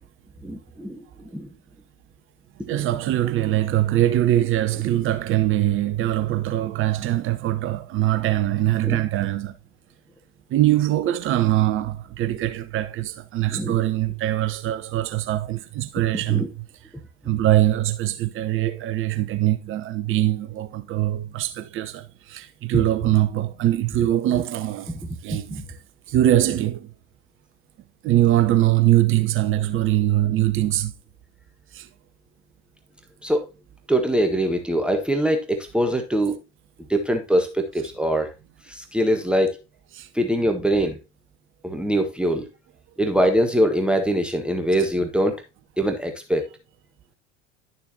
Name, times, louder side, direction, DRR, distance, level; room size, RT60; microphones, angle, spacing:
voice 1, 0.4-1.5 2.7-2.8 8.8-9.0 13.5-13.8 16.3-16.5 24.9-25.0 25.3-25.6 33.2-33.5 33.9-36.4 36.9-38.3 38.7-39.6 40.1-41.0 41.6-42.5 43.0-45.4 45.8-46.5, right 1 dB, 5° right, 1.3 m, -23 dB
voice 2, 2.7-9.6 10.5-16.4 17.2-25.8 26.1-26.9 28.0-30.9 31.7-31.9 39.9-40.1, right 13 dB, 35° right, 0.9 m, -22 dB
11.5 x 6.9 x 2.8 m
figure-of-eight pair, 80°, 37 cm